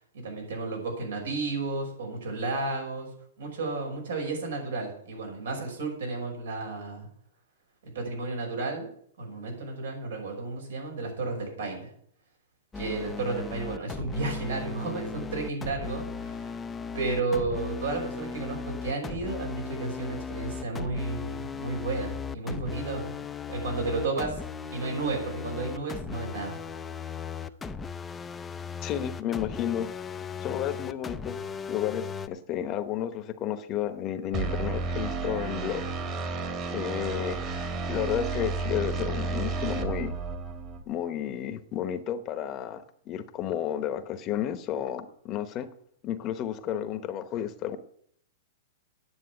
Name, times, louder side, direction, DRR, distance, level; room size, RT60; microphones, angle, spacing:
voice 1, 0.1-3.1 3.4-7.1 7.9-8.9 9.2-11.9 12.7-16.5 16.9-23.1 23.5-24.4 24.7-26.6, right 3 dB, 90° right, 1 dB, 5.8 m, -32 dB
sound 1, 12.7-32.3, left 5 dB, 10° left, 0.5 m, -37 dB
voice 2, 28.8-29.9 30.4-31.4 31.7-35.8 36.7-37.4 37.9-40.1 40.9-45.7 46.0-47.8, left 10 dB, 30° left, 10 dB, 0.9 m, -32 dB
sound 2, 34.3-40.8, right 3 dB, 30° right, 1.6 m, -32 dB
9.9 x 7.2 x 8.1 m, 0.66 s
hypercardioid pair, 145°, 0 cm